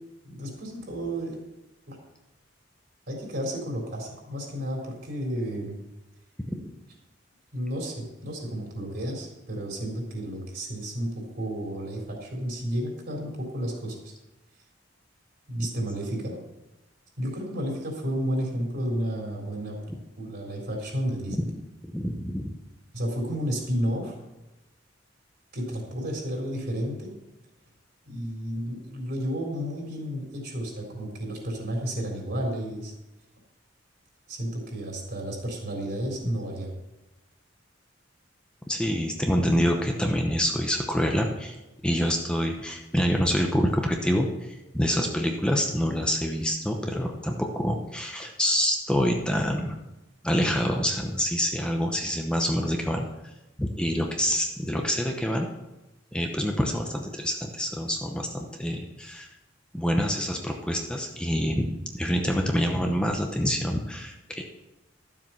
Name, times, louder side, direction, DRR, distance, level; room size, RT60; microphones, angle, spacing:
voice 1, 0.2-1.4 1.9-2.0 3.1-5.8 7.5-14.1 15.5-16.4 17.2-19.8 20.2-21.5 22.9-24.2 25.5-27.1 28.1-32.9 34.3-36.7, equal, 60° right, 0 dB, 3.9 m, -32 dB
voice 2, 21.8-22.5 38.7-41.6 41.8-49.7 50.2-53.1 53.6-55.5 56.1-59.3 59.7-61.7 61.9-64.4, equal, 5° left, 2 dB, 0.9 m, -26 dB
12.5 x 7.6 x 5.7 m, 0.99 s
head